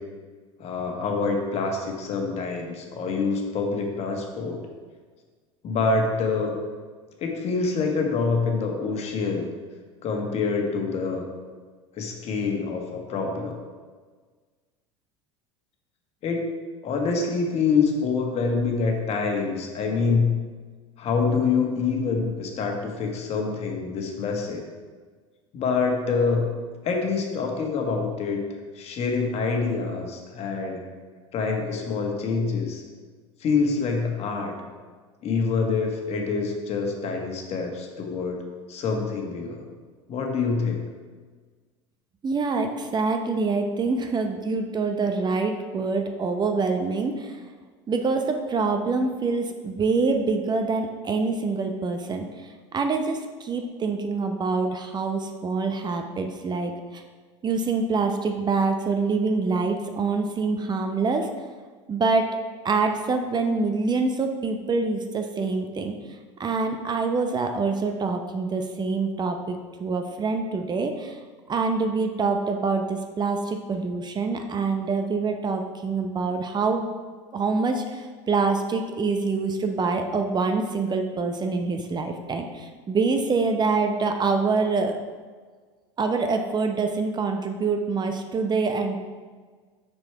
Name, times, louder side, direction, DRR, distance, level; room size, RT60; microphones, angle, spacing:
voice 1, 0.6-4.6 5.6-6.5 7.2-9.5 10.0-11.3 11.9-13.5 16.2-16.5 16.8-20.3 21.0-24.6 25.5-26.4 26.8-28.4 28.7-30.8 31.3-32.8 33.4-34.5 35.2-38.4 38.7-39.6 40.1-40.8, left 4 dB, 45° left, 2 dB, 1.6 m, -26 dB
voice 2, 42.2-47.4 47.9-57.0 57.4-61.3 61.9-62.4 62.6-66.0 66.4-71.2 71.5-76.9 77.3-85.0 86.0-89.0, right 4 dB, 30° right, 5 dB, 0.8 m, -25 dB
6.2 x 6.2 x 4.6 m, 1.5 s
hypercardioid pair, 75°, 15 cm